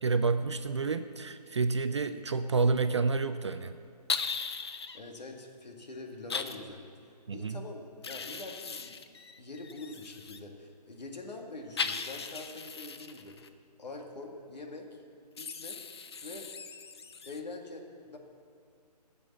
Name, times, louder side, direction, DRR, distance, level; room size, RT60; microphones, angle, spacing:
voice 1, 0.0-3.8 7.3-7.6, right 4 dB, 45° right, 10 dB, 0.4 m, -29 dB
sound 1, 4.1-5.0 6.3-6.6 8.0-10.4 11.8-13.5 15.4-17.4, left 5 dB, 40° left, 0.5 m, -38 dB
voice 2, 4.9-9.0 9.4-13.4 13.8-15.0 15.4-15.8 16.2-16.5 17.2-18.2, left 2 dB, 75° left, 2 dB, 2.0 m, -44 dB
14.5 x 6.9 x 7.3 m, 2.3 s
hypercardioid pair, 165°, 21 cm